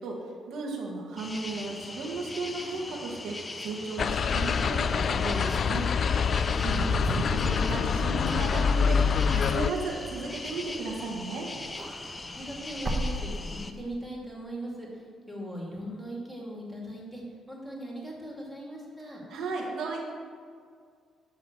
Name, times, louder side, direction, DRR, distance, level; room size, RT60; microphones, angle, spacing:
voice 1, 0.0-5.9 6.5-11.5 19.0-20.0, right 3 dB, 75° right, -2 dB, 1.8 m, -35 dB
sound 1, 1.2-13.7, left 2 dB, 25° left, 0.7 m, -40 dB
sound 2, 4.0-9.7, left 6 dB, 55° left, 0.3 m, -26 dB
Wind / Car, 5.4-11.2 11.5-13.9, right 1 dB, 30° right, 1.2 m, -37 dB
voice 2, 6.1-6.6 12.2-17.2 17.5-19.2, right 1 dB, 5° right, -3 dB, 2.6 m, -40 dB
11.5 x 3.9 x 7.4 m, 2.1 s
cardioid pair, 90°, 0 cm